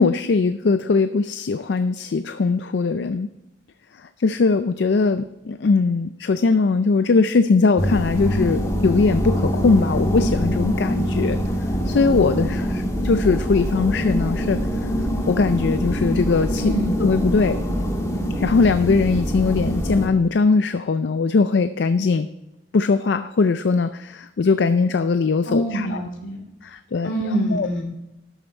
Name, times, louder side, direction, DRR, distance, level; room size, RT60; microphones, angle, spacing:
voice 1, 0.0-3.3 4.2-11.4 11.9-14.6 15.3-16.7 17.0-17.6 18.4-22.3 22.7-25.9 26.6-27.7, left 4 dB, 60° left, 11 dB, 0.4 m, -20 dB
sound 1, 7.8-20.1, equal, 15° left, 1.4 m, -24 dB
voice 2, 16.6-17.0 25.5-26.4 27.0-27.8, right 1 dB, 75° left, 2 dB, 2.8 m, -25 dB
12.0 x 7.0 x 4.3 m, 0.94 s
head